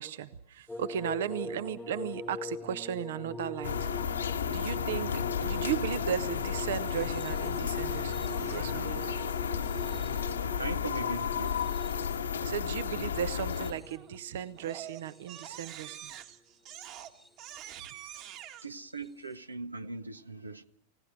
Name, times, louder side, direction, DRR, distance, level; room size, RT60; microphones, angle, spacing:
voice 1, 0.0-3.9 4.5-9.1 12.4-16.1, right 9 dB, 60° right, 15 dB, 0.9 m, -36 dB
sound 1, 0.7-15.9 16.8-17.5 18.9-19.1, left 2 dB, 5° left, 1.3 m, -43 dB
sound 2, 3.6-13.7, left 7 dB, 70° left, 1.5 m, -32 dB
Crying sobbing, 8.2-9.2 13.9-14.2 14.6-18.7, right 11 dB, 40° right, 1.9 m, -46 dB
voice 2, 10.5-11.6 18.6-20.6, right 2 dB, 80° right, 11 dB, 1.0 m, -39 dB
29.5 x 17.5 x 6.6 m, 0.70 s
figure-of-eight pair, 90°, 0 cm